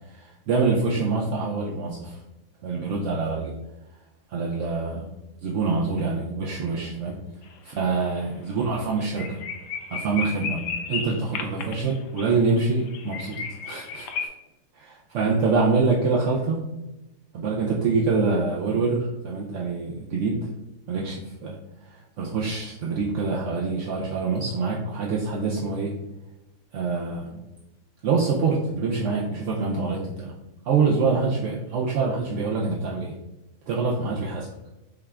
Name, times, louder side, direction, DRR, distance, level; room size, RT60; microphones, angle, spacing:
voice 1, 0.1-2.2 2.6-3.5 4.3-5.1 5.4-7.2 7.6-9.4 9.9-14.3 14.8-16.7 17.3-20.5 20.9-21.6 21.8-25.9 26.7-27.4 28.0-30.3 30.7-33.1 33.7-34.5, right 4 dB, 65° right, -2 dB, 0.7 m, -25 dB
sound 1, 7.5-7.8 8.1-8.2 8.6-8.7 9.0-14.3, left 5 dB, 85° left, 1.2 m, -34 dB
5.8 x 2.4 x 3.2 m, 0.97 s
omnidirectional pair, 1.8 m